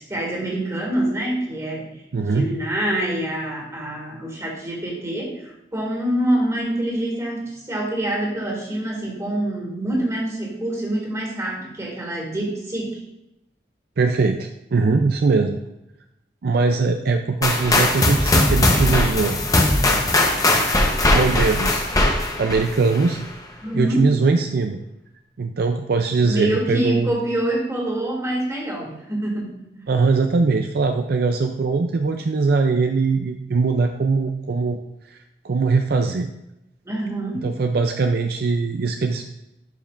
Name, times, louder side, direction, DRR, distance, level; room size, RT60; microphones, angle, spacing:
voice 1, 0.1-1.8 2.3-13.0 23.6-24.1 26.2-29.8 36.8-37.5, right 1 dB, 20° right, -1 dB, 2.1 m, -25 dB
voice 2, 2.1-2.5 14.0-15.6 16.4-19.4 21.1-21.8 22.4-23.2 23.7-24.8 25.4-27.1 29.9-34.8 35.1-35.2 35.4-36.3 37.4-39.2, right 4 dB, 60° right, 5 dB, 0.4 m, -21 dB
sound 1, 17.4-23.3, left 1 dB, 20° left, 0.8 m, -19 dB
11.5 x 5.4 x 2.5 m, 0.87 s
head